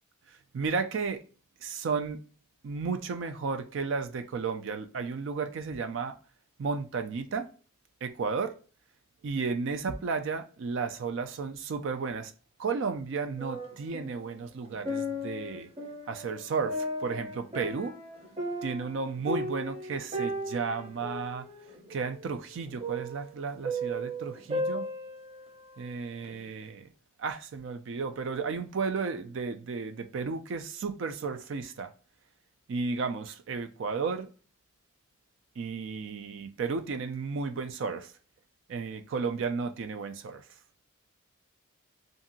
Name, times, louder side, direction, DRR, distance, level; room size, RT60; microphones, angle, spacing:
voice 1, 0.5-1.2 1.6-2.2 2.6-6.2 6.6-7.5 8.0-8.5 9.2-12.3 12.6-15.7 16.1-18.0 18.6-21.5 21.9-24.9 25.8-26.9 27.2-31.9 32.7-34.3 35.6-38.1 38.7-40.4, right 5 dB, 60° right, 0.4 m, -33 dB
sound 1, 13.4-14.3 14.7-25.8 26.2-26.3, equal, 30° right, 0.7 m, -36 dB
2.8 x 2.6 x 2.6 m
head